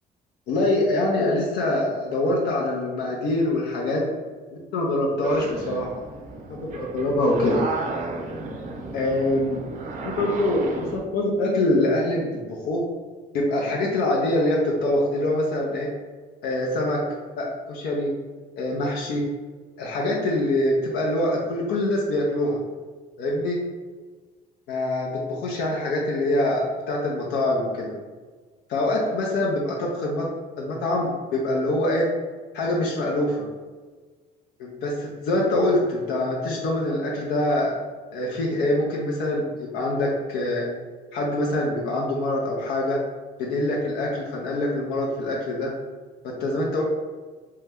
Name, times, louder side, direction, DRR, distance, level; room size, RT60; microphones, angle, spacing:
voice 1, 0.5-4.1 4.7-5.9 6.7-7.6 8.9-9.7 10.2-12.8 13.3-15.9 16.4-17.0 17.4-18.1 18.6-19.3 19.8-22.6 23.2-23.6 24.7-27.9 28.7-30.3 30.6-32.1 32.5-33.4 34.6-37.7 38.1-40.7 41.1-43.0 43.4-45.7 46.2-46.8, left 1 dB, 75° left, -3 dB, 0.6 m, -24 dB
sound 1, 5.2-11.0, right 3 dB, 50° right, 0.5 m, -33 dB
2.7 x 2.2 x 3.4 m, 1.4 s
cardioid pair, 110°, 17 cm